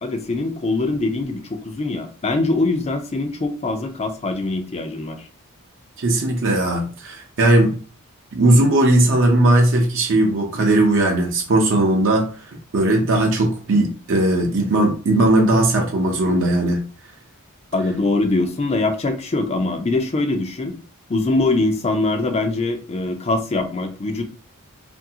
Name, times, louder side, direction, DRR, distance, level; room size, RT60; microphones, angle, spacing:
voice 1, 0.0-5.3 17.7-20.8 21.1-24.2, left 2 dB, 30° left, 0.4 m, -23 dB
voice 2, 6.0-7.8 8.3-12.3 12.7-16.8, right 1 dB, 60° right, 0.6 m, -18 dB
2.7 x 2.6 x 2.7 m
head